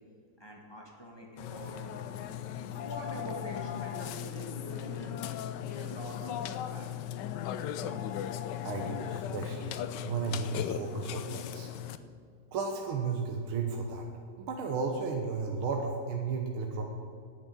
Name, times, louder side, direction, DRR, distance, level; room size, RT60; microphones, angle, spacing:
voice 1, 0.4-1.9 2.8-5.2 5.6-6.9, equal, 10° left, -1 dB, 1.8 m, -44 dB
Burping eructation, 1.4-12.0, left 10 dB, 70° left, 1.0 m, -37 dB
voice 2, 8.6-11.7 12.5-14.1 14.4-16.8, right 4 dB, 75° right, 2 dB, 1.9 m, -34 dB
9.8 x 9.1 x 8.7 m, 2.4 s
omnidirectional pair, 2.4 m